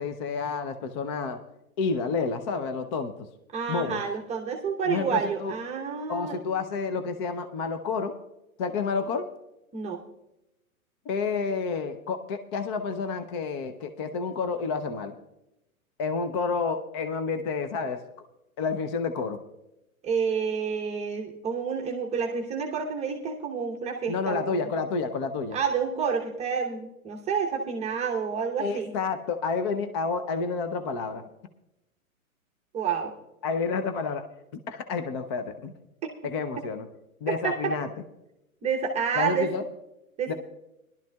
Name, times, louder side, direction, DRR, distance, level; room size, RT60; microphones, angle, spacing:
voice 1, 0.0-1.4 1.8-3.3 3.7-4.0 4.9-5.5 6.1-8.1 8.6-9.3 11.1-15.2 16.0-18.0 18.6-19.4 24.1-25.6 28.6-31.2 33.4-34.3 34.5-35.7 36.2-36.9 37.2-37.9 39.2-39.6 40.3-40.4, left 4 dB, 20° left, 9 dB, 0.4 m, -29 dB
voice 2, 3.5-6.4 9.7-10.0 20.0-24.7 25.5-28.9 32.7-33.1 37.3-37.7 38.6-39.5 40.2-40.3, right 6 dB, 15° right, 1 dB, 0.8 m, -29 dB
20.5 x 11.5 x 2.3 m, 0.90 s
hypercardioid pair, 125°, 43 cm